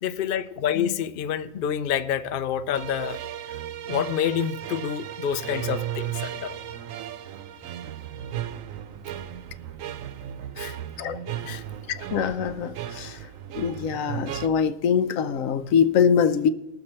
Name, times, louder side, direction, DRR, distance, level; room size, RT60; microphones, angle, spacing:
voice 1, 0.0-3.2 3.9-6.6 10.6-10.8 11.4-11.6, left 9 dB, 60° left, 0.6 m, -28 dB
sound 1, 2.7-14.5, right 11 dB, 80° right, 1.0 m, -35 dB
voice 2, 12.1-13.1 13.5-16.5, left 7 dB, 80° left, 1.0 m, -23 dB
19.5 x 6.9 x 4.3 m
omnidirectional pair, 1.4 m